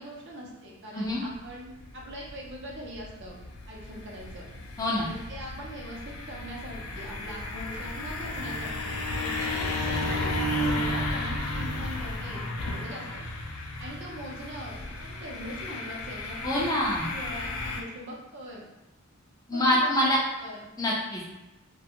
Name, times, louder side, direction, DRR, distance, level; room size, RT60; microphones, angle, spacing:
voice 1, 0.0-4.4 5.0-13.2 13.8-16.6 17.0-18.7 19.5-20.7, equal, 55° right, -3 dB, 0.6 m, -42 dB
sound 1, 1.0-17.8, left 1 dB, 80° left, 0.4 m, -33 dB
voice 2, 4.8-5.1 16.4-17.1 19.5-20.2 20.8-21.2, left 1 dB, 15° left, -4 dB, 0.4 m, -25 dB
2.4 x 2.2 x 2.8 m, 1.0 s
head